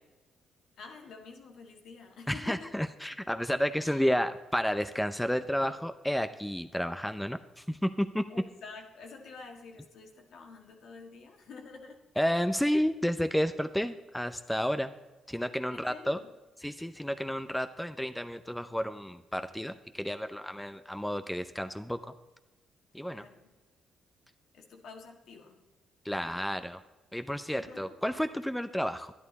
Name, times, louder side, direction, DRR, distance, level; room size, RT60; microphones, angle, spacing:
voice 1, 0.8-2.7 3.3-3.5 3.8-4.1 8.3-12.0 15.7-16.3 23.1-23.5 24.5-25.6 27.5-28.0, left 4 dB, 70° left, 3 dB, 1.7 m, -48 dB
voice 2, 2.3-8.2 12.2-14.9 15.3-16.2 16.6-22.1 22.9-23.3 26.0-26.8 27.1-29.1, equal, 5° left, 9 dB, 0.5 m, -31 dB
11.0 x 10.5 x 4.1 m, 1.1 s
cardioid pair, 90°, 0 cm